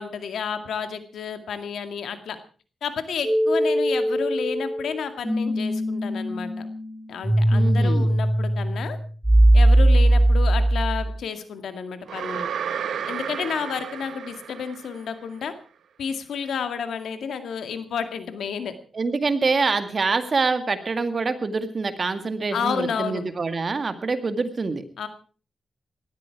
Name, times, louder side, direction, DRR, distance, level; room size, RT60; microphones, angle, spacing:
voice 1, 0.0-2.4 2.8-6.7 7.1-9.0 9.5-12.5 13.1-15.5 16.0-18.8 22.5-23.2 25.0-25.1, left 6 dB, 85° left, 8 dB, 2.1 m, -31 dB
sound 1, 3.2-11.1, right 1 dB, 10° right, 1.7 m, -20 dB
voice 2, 7.5-8.1 18.9-24.8, right 4 dB, 40° right, 9 dB, 2.0 m, -25 dB
sound 2, 12.1-15.2, right 8 dB, 85° right, 1.2 m, -32 dB
18.5 x 13.5 x 4.7 m, 0.39 s
cardioid pair, 90°, 0 cm